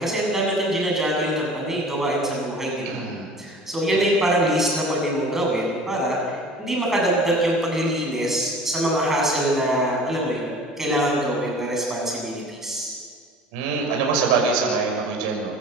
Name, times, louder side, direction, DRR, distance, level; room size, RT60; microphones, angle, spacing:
voice 1, 0.0-3.0 3.4-12.9, right 1 dB, 10° right, -3 dB, 7.4 m, -23 dB
voice 2, 2.8-3.3 13.5-15.6, right 5 dB, 85° right, 1 dB, 5.7 m, -24 dB
27.5 x 14.0 x 8.1 m, 2.1 s
cardioid pair, 135°, 3 cm